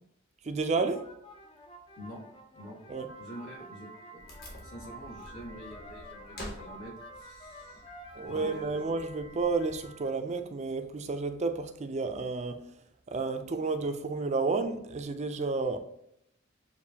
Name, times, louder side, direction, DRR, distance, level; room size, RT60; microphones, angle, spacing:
voice 1, 0.4-1.0 2.9-3.1 8.1-12.6 13.1-15.8, right 3 dB, 30° right, 7 dB, 0.4 m, -31 dB
sound 1, 0.6-8.7, left 1 dB, 25° left, 0.4 m, -51 dB
Piano, 3.1-10.1, right 4 dB, 90° left, 1.1 m, -51 dB
voice 2, 3.2-4.2 4.6-7.8 8.2-9.0, equal, 70° left, -2 dB, 1.5 m, -46 dB
Wood, 4.2-9.9, equal, 45° left, 1.2 m, -49 dB
6.7 x 2.6 x 2.7 m, 0.75 s
head